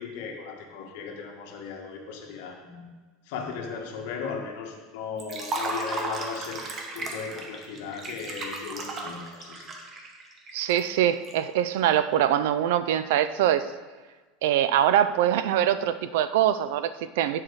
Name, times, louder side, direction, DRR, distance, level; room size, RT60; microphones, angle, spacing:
voice 1, 0.0-2.9 3.2-6.7 6.9-9.7, left 6 dB, 70° left, 1 dB, 1.5 m, -37 dB
Liquid, 5.2-11.3, right 2 dB, 30° right, 1.1 m, -35 dB
voice 2, 10.5-13.7 14.4-17.4, right 11 dB, 80° right, 13 dB, 0.4 m, -23 dB
7.6 x 5.8 x 4.7 m, 1.3 s
supercardioid pair, 135°, 0 cm